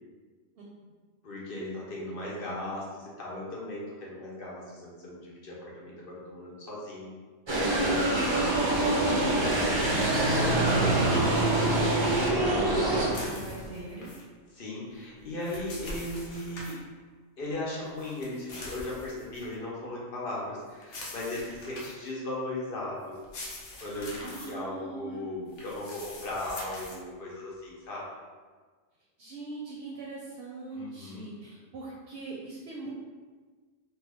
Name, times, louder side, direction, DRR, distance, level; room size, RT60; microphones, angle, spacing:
voice 1, 1.2-7.2 14.5-16.8 17.4-23.2 23.8-28.1 30.7-31.3, left 1 dB, 55° left, -5 dB, 0.8 m, -37 dB
sound 1, 7.5-13.1, right 1 dB, 40° right, 0.4 m, -26 dB
voice 2, 7.5-14.1 23.8-23.9 24.2-25.3 29.2-32.9, right 2 dB, 65° right, -3 dB, 0.7 m, -41 dB
sound 2, 7.9-13.8, right 2 dB, 90° right, 0.9 m, -32 dB
sound 3, 13.1-14.2 15.2-16.8 18.0-19.5 20.8-22.1 23.1-24.5 25.5-27.0, left 1 dB, 80° left, 1.0 m, -43 dB
3.0 x 2.2 x 3.3 m, 1.4 s
omnidirectional pair, 1.2 m